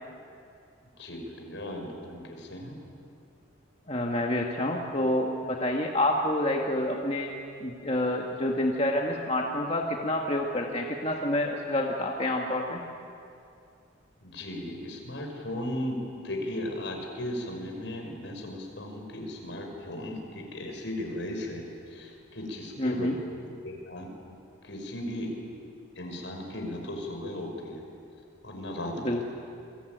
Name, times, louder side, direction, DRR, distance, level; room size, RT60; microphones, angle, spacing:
voice 1, 1.0-2.8 14.2-16.0 16.2-23.1 23.6-24.1 24.6-25.3 26.0-27.8 28.4-29.3, left 1 dB, 70° left, 3 dB, 5.7 m, -36 dB
voice 2, 3.9-7.3 7.6-12.8 22.8-23.2 29.0-29.3, left 1 dB, 30° left, 0 dB, 1.8 m, -28 dB
28.5 x 22.5 x 9.4 m, 2.5 s
head